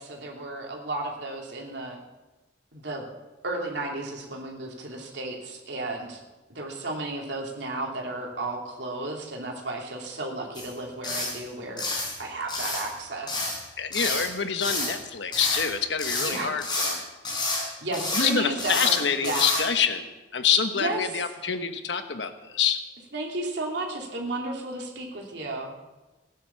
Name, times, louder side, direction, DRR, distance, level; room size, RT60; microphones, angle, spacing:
voice 1, 0.0-2.0 2.7-3.1 3.4-6.2 6.5-11.8 12.2-13.6 16.2-16.5 17.8-19.4 20.7-21.2 23.1-25.7, right 2 dB, 70° right, 0 dB, 3.1 m, -33 dB
sound 1, 10.5-10.7 11.0-11.4 11.8-12.2 12.5-12.9 13.3-13.6 13.9-14.3 14.6-15.0 15.3-15.7 16.0-16.9 17.2-17.7 17.9-18.3 18.6-19.0 19.2-19.6, left 2 dB, 25° left, 5.6 m, -29 dB
voice 2, 13.8-17.0 18.1-20.0 20.3-22.8, left 6 dB, 75° left, 8 dB, 1.2 m, -26 dB
17.0 x 10.0 x 7.1 m, 1.1 s
head